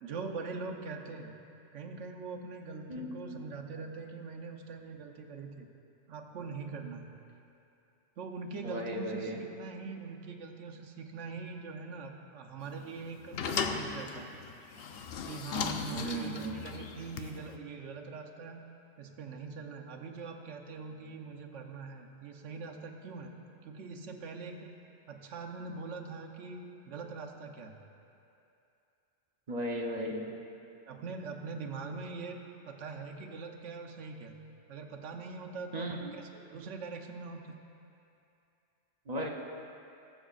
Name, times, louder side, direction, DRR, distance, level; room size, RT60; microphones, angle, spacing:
voice 1, 0.0-1.3 1.7-5.7 6.1-7.0 8.2-14.3 15.3-18.6 19.0-23.3 23.6-24.7 25.1-27.8 30.9-34.3 34.7-37.6, right 4 dB, 75° right, 2 dB, 1.1 m, -42 dB
voice 2, 2.9-3.4 8.6-9.4 15.9-16.5 29.5-30.4 35.7-36.1 39.1-39.3, right 1 dB, 40° right, 0 dB, 0.8 m, -36 dB
sound 1, 12.6-17.6, left 5 dB, 60° left, 0.7 m, -37 dB
19.0 x 7.1 x 2.4 m, 2.7 s
omnidirectional pair, 1.3 m